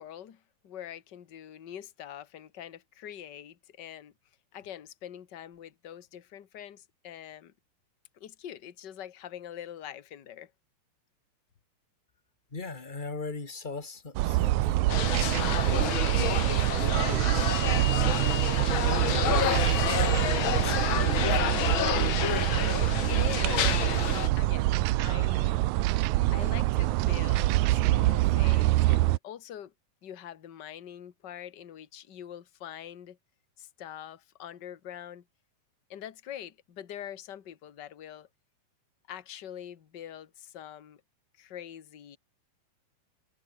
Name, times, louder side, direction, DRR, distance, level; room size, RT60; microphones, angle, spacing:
voice 1, 0.0-4.1 4.5-7.5 8.1-10.5 23.0-25.6 26.3-29.7 30.0-33.2 33.6-35.2 35.9-38.3 39.1-41.0 41.4-42.2, left 10 dB, 40° left, 1.6 m, -44 dB
voice 2, 12.5-17.3 17.9-19.6 19.9-21.8, left 3 dB, 15° left, 1.9 m, -41 dB
sound 1, 14.2-29.2, right 17 dB, 80° right, 1.9 m, -25 dB
sound 2, 14.9-24.3, left 10 dB, 65° left, 1.2 m, -29 dB
omnidirectional pair, 3.9 m